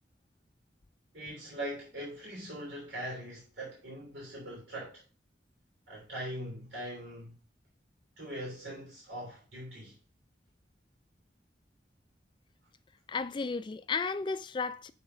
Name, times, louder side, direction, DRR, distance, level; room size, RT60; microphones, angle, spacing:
voice 1, 1.1-5.0 5.9-7.4 8.2-10.0, right 1 dB, 90° right, 3.4 m, -41 dB
voice 2, 13.1-14.9, left 4 dB, 25° left, 0.3 m, -33 dB
7.2 x 4.2 x 5.5 m
head